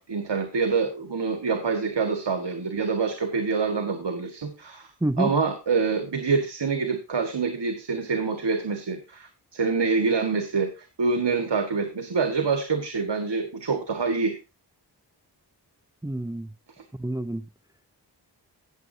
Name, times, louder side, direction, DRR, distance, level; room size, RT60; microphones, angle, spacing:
voice 1, 0.0-4.9 5.2-14.4, right 4 dB, 75° right, 1.7 m, -26 dB
voice 2, 5.0-5.3 16.0-16.5 17.0-17.4, right 1 dB, 10° right, 0.6 m, -28 dB
16.5 x 7.5 x 2.7 m
cardioid pair, 45°, 43 cm